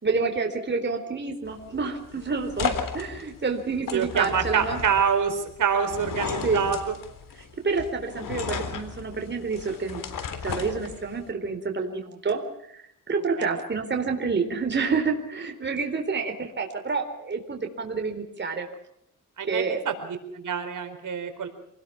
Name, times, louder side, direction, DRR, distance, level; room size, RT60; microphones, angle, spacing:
voice 1, 0.0-4.8 6.4-6.6 7.6-10.0 10.4-12.4 12.7-12.8 13.1-18.7 19.4-19.8, right 4 dB, 35° right, 4 dB, 4.1 m, -28 dB
sound 1, 1.4-11.3, left 6 dB, 75° left, 3.8 m, -35 dB
voice 2, 3.9-7.0 13.4-13.5 19.4-19.9 20.3-21.5, right 7 dB, 65° right, 6 dB, 4.4 m, -26 dB
28.0 x 20.0 x 6.0 m, 0.72 s
cardioid pair, 105°, 34 cm